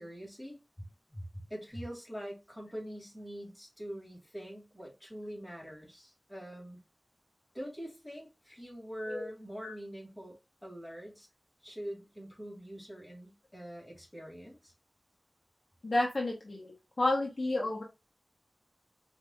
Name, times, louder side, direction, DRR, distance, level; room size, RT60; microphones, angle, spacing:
voice 1, 0.0-6.8 7.5-10.4 10.6-11.3 11.6-14.7, equal, 10° left, 2.1 m, -44 dB
voice 2, 15.8-16.7 17.0-17.8, left 2 dB, 50° left, 0.9 m, -30 dB
5.1 x 2.7 x 2.3 m
wide cardioid pair, 75°, 0 cm